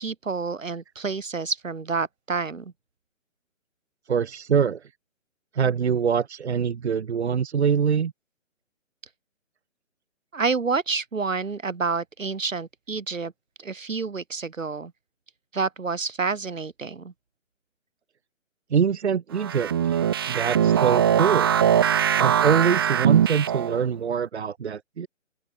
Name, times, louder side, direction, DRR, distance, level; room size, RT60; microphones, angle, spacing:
voice 1, 0.0-2.7 10.3-13.3 13.6-14.9 15.5-17.1, right 4 dB, 75° right, 7.2 m, -28 dB
voice 2, 4.1-4.9 5.5-8.1 18.7-21.5 22.2-25.1, right 7 dB, 55° right, 3.3 m, -24 dB
sound 1, 19.4-23.8, right 9 dB, 20° right, 0.7 m, -21 dB
open air
hypercardioid pair, 155°, 39 cm